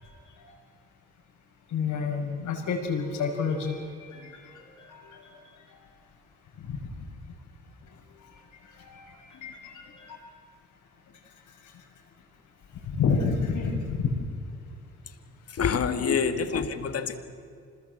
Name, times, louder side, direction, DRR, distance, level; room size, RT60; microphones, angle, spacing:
voice 1, 1.7-4.3 4.8-5.4 8.9-9.7 10.0-10.2 12.9-14.1 15.7-16.6, left 5 dB, 80° left, -1 dB, 6.6 m, -29 dB
voice 2, 15.5-17.2, left 6 dB, 50° left, 9 dB, 2.0 m, -27 dB
26.5 x 20.5 x 7.9 m, 2.3 s
cardioid pair, 90°, 30 cm